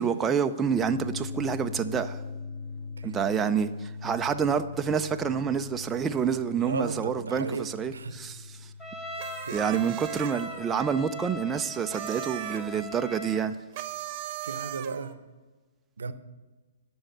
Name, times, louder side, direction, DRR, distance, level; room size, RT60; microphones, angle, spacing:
voice 1, 0.0-2.2 3.0-8.7 9.5-13.6, right 7 dB, 15° right, 0.4 m, -28 dB
sound 1, 0.7-13.6, left 5 dB, 45° left, 2.0 m, -42 dB
voice 2, 6.6-8.2 9.4-9.8 14.4-15.2 16.0-16.1, right 4 dB, 80° right, 0.8 m, -35 dB
Trumpet, 8.8-13.5, right 1 dB, 5° left, 1.6 m, -40 dB
sound 2, 9.2-10.6 11.8-12.7 13.7-15.1, right 13 dB, 40° right, 0.9 m, -38 dB
10.0 x 6.2 x 7.8 m
hypercardioid pair, 130°, 0 cm